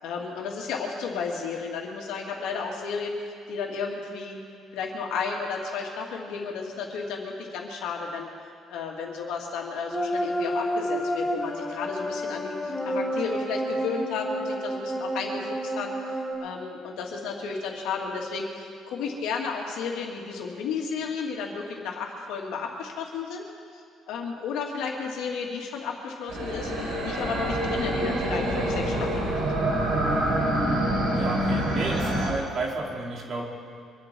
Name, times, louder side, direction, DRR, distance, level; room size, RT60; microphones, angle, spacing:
voice 1, 0.0-3.2 3.5-4.4 4.7-8.3 8.7-15.9 16.4-23.4 23.7-26.7 27.0-29.4, left 5 dB, 80° left, 0 dB, 2.5 m, -33 dB
sound 1, 9.9-16.3, equal, ahead, 2.6 m, -30 dB
sound 2, 26.3-32.3, right 1 dB, 65° right, 5.0 m, -26 dB
voice 2, 31.1-33.5, right 2 dB, 35° right, -1 dB, 2.3 m, -32 dB
24.5 x 12.0 x 4.6 m, 2.3 s
cardioid pair, 180°, 0 cm